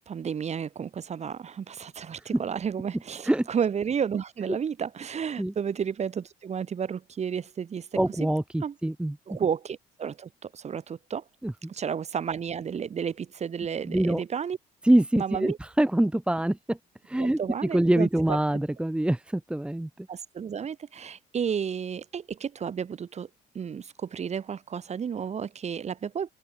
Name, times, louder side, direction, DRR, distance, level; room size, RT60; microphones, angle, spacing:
voice 1, 0.0-7.9 8.6-8.7 9.3-11.2 11.7-14.6 15.1-15.6 17.2-18.1 20.1-23.3 23.5-26.3, right 7 dB, 40° right, 5.9 m, -32 dB
voice 2, 8.0-9.2 11.4-11.7 13.8-14.2 14.8-16.8 17.1-20.1, right 1 dB, 5° right, 1.7 m, -25 dB
open air
cardioid pair, 110°, 17 cm